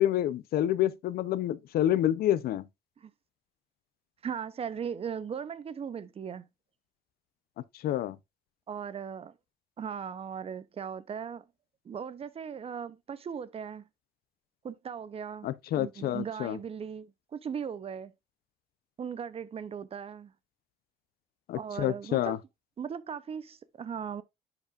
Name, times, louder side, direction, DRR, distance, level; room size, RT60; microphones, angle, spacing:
voice 1, 0.0-2.6 7.8-8.2 15.4-16.6 21.5-22.4, left 12 dB, 65° left, 0.6 m, -28 dB
voice 2, 4.2-6.4 8.7-9.3 9.8-11.4 11.8-13.8 14.6-15.5 15.8-18.1 19.0-20.3 21.5-22.4 22.8-24.2, right 7 dB, 35° right, 0.6 m, -38 dB
10.5 x 4.9 x 2.4 m
cardioid pair, 110°, 17 cm